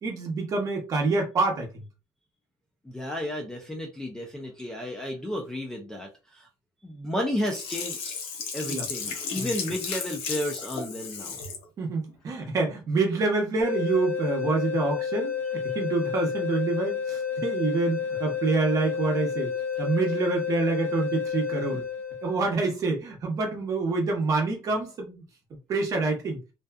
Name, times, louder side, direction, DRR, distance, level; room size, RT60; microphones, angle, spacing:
voice 1, 0.0-1.8 8.7-8.8 9.4-9.5 11.8-19.5 19.8-21.8 22.2-25.2 25.7-26.4, right 3 dB, 35° right, 1 dB, 0.8 m, -27 dB
voice 2, 2.8-6.5 6.8-8.2 8.5-11.4, left 1 dB, 5° left, 1 dB, 0.3 m, -32 dB
Sink (filling or washing), 7.4-11.6 12.1-12.2, left 5 dB, 85° left, 0.7 m, -34 dB
sound 1, 13.6-22.5, left 7 dB, 25° left, 0.7 m, -30 dB
2.6 x 2.2 x 2.2 m, 0.29 s
cardioid pair, 175°, 10 cm